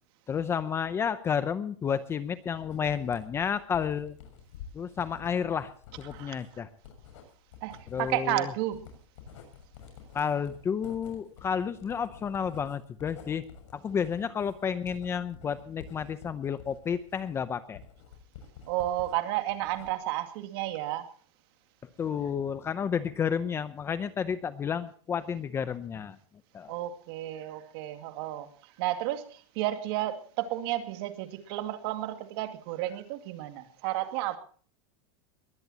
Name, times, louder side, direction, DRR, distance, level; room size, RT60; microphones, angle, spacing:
voice 1, 0.3-4.2 4.7-5.7 6.0-6.7 7.9-8.5 10.1-13.4 13.7-17.8 22.0-26.2 26.5-26.7, left 7 dB, 15° left, 0.6 m, -31 dB
Writing, 2.6-19.2 19.5-20.2, left 7 dB, 70° left, 6.8 m, -50 dB
voice 2, 6.1-6.6 7.6-8.9 18.7-21.1 26.7-28.5 28.8-34.4, right 14 dB, 50° right, 2.2 m, -32 dB
22.0 x 16.5 x 2.9 m
supercardioid pair, 170°, 16 cm